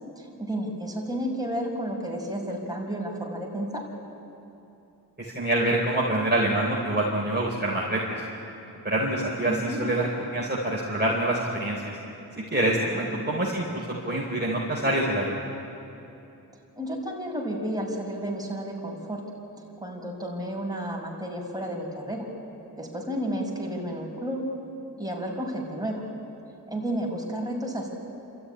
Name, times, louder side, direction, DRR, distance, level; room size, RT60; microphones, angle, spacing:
voice 1, 0.2-3.9 9.4-9.9 12.9-13.2 16.8-19.2 19.8-22.3 22.8-24.4 25.0-26.0 26.7-27.9, right 1 dB, 10° right, -2 dB, 5.7 m, -32 dB
voice 2, 5.2-8.0 8.8-11.8 12.4-15.4, right 1 dB, 25° right, -4 dB, 3.8 m, -26 dB
29.5 x 14.0 x 10.0 m, 2.9 s
wide cardioid pair, 65°, 39 cm